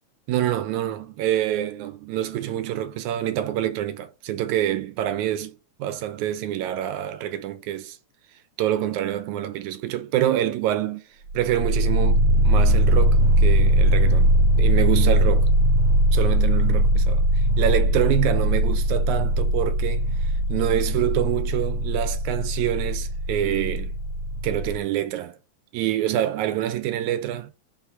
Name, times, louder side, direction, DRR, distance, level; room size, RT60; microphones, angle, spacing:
voice 1, 0.3-8.0 8.6-11.0 11.3-14.3 14.6-15.5 16.1-23.9 24.4-25.4 25.7-27.5, right 12 dB, 90° right, 2.1 m, -26 dB
sound 1, 11.3-24.8, equal, 65° right, 2.0 m, -20 dB
5.1 x 3.5 x 5.7 m
omnidirectional pair, 3.4 m